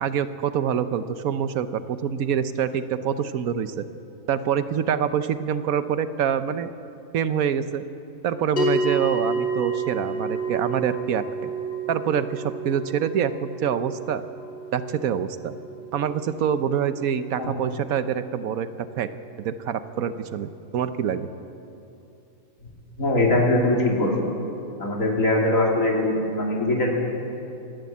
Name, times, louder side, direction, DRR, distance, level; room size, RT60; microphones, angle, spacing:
voice 1, 0.0-3.8 4.3-6.7 7.1-7.8 8.2-11.5 11.9-14.2 14.7-15.5 15.9-18.7 19.0-19.1 19.4-21.3, right 8 dB, 80° right, 11 dB, 1.3 m, -26 dB
sound 1, 8.6-19.1, right 3 dB, 40° left, 3.0 m, -31 dB
voice 2, 23.0-24.1 24.8-26.9, left 2 dB, 70° left, -2 dB, 3.4 m, -21 dB
26.0 x 11.5 x 8.5 m, 2.8 s
omnidirectional pair, 1.5 m